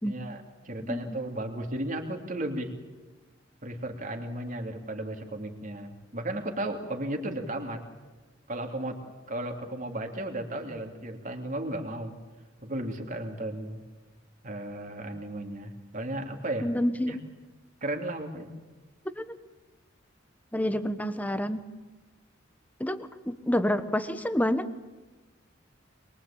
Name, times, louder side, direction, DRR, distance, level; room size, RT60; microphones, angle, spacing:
voice 1, 0.1-2.7 3.6-7.8 8.5-9.0 9.3-12.2 12.6-13.8 14.4-16.7 17.1-17.2 17.8-18.5, right 1 dB, 40° right, 4 dB, 3.1 m, -34 dB
voice 2, 0.8-1.2 16.6-17.2 19.2-19.3 20.5-21.6 22.8-24.8, equal, 10° left, 11 dB, 1.1 m, -28 dB
23.0 x 23.0 x 8.8 m, 1.2 s
head